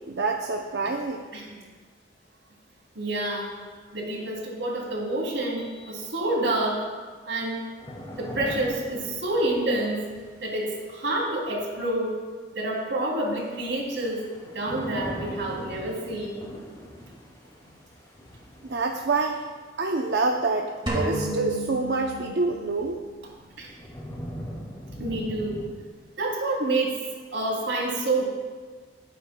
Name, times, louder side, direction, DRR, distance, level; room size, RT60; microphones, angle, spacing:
voice 1, 0.1-1.2 18.6-19.4 19.8-23.0, right 3 dB, 65° right, 2 dB, 0.6 m, -26 dB
voice 2, 2.9-3.5 3.9-6.8 7.3-7.6 8.2-10.1 10.4-12.2 12.5-16.4 23.6-23.7 25.0-25.6 26.2-27.0 27.3-28.2, right 2 dB, 85° right, -2 dB, 2.9 m, -28 dB
sound 1, 7.8-10.9 13.3-19.6 22.2-22.3 22.9-25.7, equal, 20° left, 2.2 m, -40 dB
sound 2, 20.9-22.9, right 1 dB, 25° right, 2.0 m, -31 dB
17.0 x 9.2 x 2.2 m, 1.5 s
head